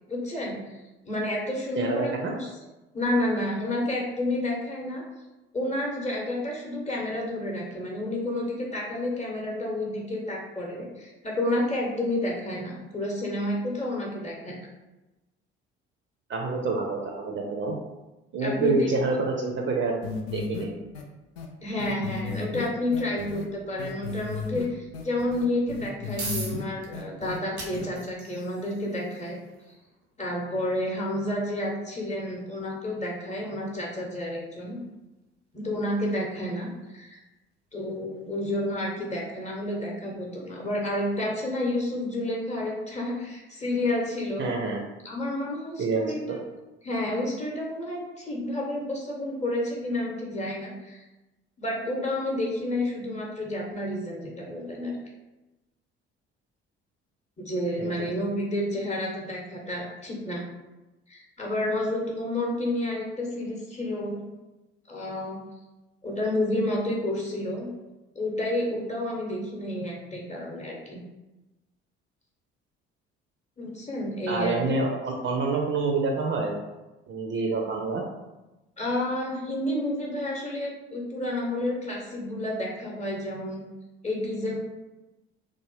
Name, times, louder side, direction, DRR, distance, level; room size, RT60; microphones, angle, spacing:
voice 1, 0.1-0.8 1.0-2.5 2.9-5.0 5.5-14.6 18.4-18.9 21.6-29.4 30.2-34.8 35.5-37.2 37.7-44.5 45.0-46.4 46.8-51.0 51.6-55.0 57.4-60.4 61.1-64.2 64.9-65.4 66.0-67.7 68.1-71.0 73.6-74.6 78.8-83.6 84.0-84.6, left 1 dB, 20° left, -2 dB, 1.0 m, -30 dB
voice 2, 1.8-2.3 16.3-17.7 18.3-19.9 20.3-20.8 44.4-44.8 45.8-46.1 57.8-58.1 74.3-76.5 77.1-78.0, right 3 dB, 35° right, 0 dB, 0.5 m, -27 dB
sound 1, 20.0-20.6 20.9-21.0 21.4-21.5 21.8-23.4 23.8-24.6 24.9-26.6 26.9-27.4 27.7-27.9, left 5 dB, 75° left, 0.5 m, -34 dB
sound 2, 26.2-40.6, right 3 dB, 90° right, 0.6 m, -45 dB
3.2 x 2.1 x 3.1 m, 1.0 s
figure-of-eight pair, 50°, 32 cm